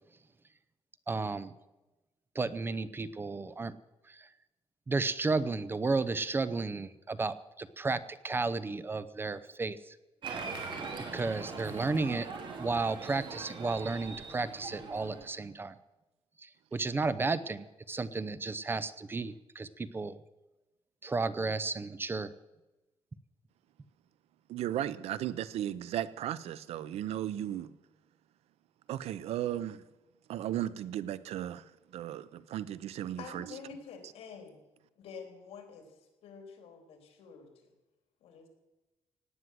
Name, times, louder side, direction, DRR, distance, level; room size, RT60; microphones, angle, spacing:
voice 1, 1.1-1.5 2.3-3.8 4.1-4.3 4.9-10.0 11.1-12.3 12.6-15.8 16.4-20.2 21.0-22.3, right 3 dB, 20° right, 0.6 m, -33 dB
Applause, 10.2-15.3, right 4 dB, 50° right, 3.0 m, -41 dB
voice 2, 24.5-27.8 28.9-29.8 30.3-31.6 31.9-33.4, right 12 dB, 85° right, 0.8 m, -35 dB
voice 3, 33.2-34.6 35.0-37.7 38.2-38.5, left 5 dB, 80° left, 3.6 m, -48 dB
17.5 x 9.5 x 7.7 m
cardioid pair, 140°, 10 cm